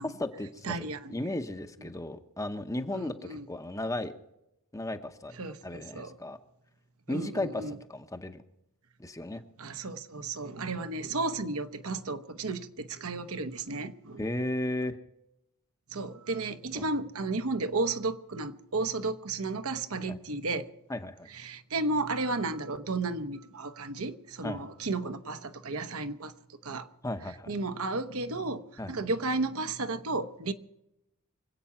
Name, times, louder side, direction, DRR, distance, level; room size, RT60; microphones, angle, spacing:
voice 1, 0.0-4.1 4.7-5.3 5.6-6.4 7.1-8.4 9.0-9.4 14.2-15.0 16.7-16.9 20.1-20.2 20.9-21.3 24.4-24.7 27.0-27.5 28.8-28.9, left 1 dB, 15° left, 0.8 m, -35 dB
voice 2, 0.6-1.1 2.9-3.4 5.4-6.1 7.1-7.8 9.6-14.2 15.9-20.7 21.4-26.3 26.6-26.9 27.5-28.6 28.9-30.5, right 3 dB, 70° right, 1.0 m, -33 dB
25.5 x 8.5 x 5.7 m
head